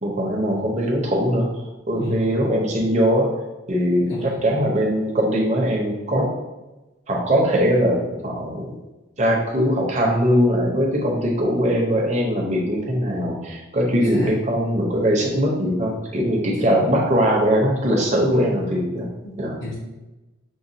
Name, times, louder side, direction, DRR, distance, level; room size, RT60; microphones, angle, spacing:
voice 1, 0.0-3.3 3.7-6.3 7.1-8.8 9.2-19.1 19.4-19.6, equal, 35° right, -1 dB, 0.7 m, -21 dB
voice 2, 2.0-2.4 4.0-4.4 13.9-14.4 16.6-16.8 18.3-18.6 19.2-19.7, equal, 65° left, -7 dB, 0.8 m, -31 dB
6.2 x 2.2 x 2.7 m, 1.1 s
head